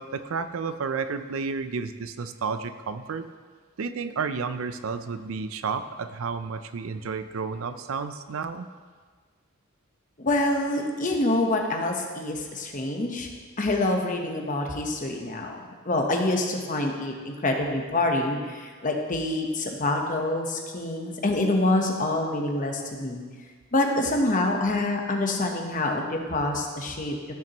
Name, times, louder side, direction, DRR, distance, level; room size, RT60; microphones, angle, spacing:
voice 1, 0.0-3.2 3.8-8.7, right 5 dB, 70° right, 11 dB, 0.5 m, -31 dB
voice 2, 10.2-13.3 13.6-23.2 23.7-27.2, left 2 dB, 40° left, 2 dB, 1.0 m, -26 dB
15.0 x 6.0 x 3.0 m, 1.5 s
head